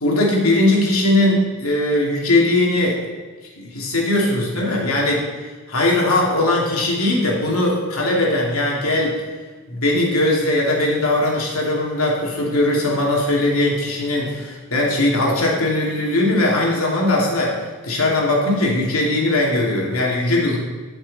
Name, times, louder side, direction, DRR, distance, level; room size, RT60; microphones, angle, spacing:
voice 1, 0.0-3.0 3.6-5.2 5.7-9.1 9.7-17.5 17.8-20.6, left 1 dB, 75° left, -2 dB, 2.7 m, -19 dB
13.5 x 6.6 x 4.2 m, 1.4 s
head